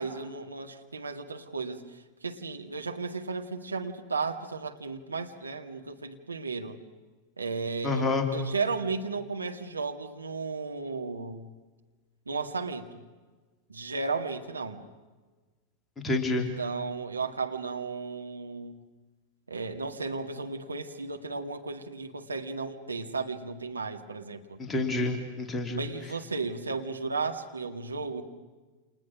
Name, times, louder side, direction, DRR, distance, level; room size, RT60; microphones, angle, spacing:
voice 1, 0.0-6.8 7.4-8.1 8.3-11.5 12.3-13.0 13.7-14.8 16.2-18.8 19.5-24.6 25.8-28.2, right 4 dB, 80° right, 4 dB, 1.9 m, -34 dB
voice 2, 7.8-8.3 16.0-16.5 24.7-25.8, left 2 dB, 15° left, 2 dB, 3.1 m, -28 dB
29.5 x 28.0 x 6.3 m, 1.3 s
figure-of-eight pair, 90°, 0 cm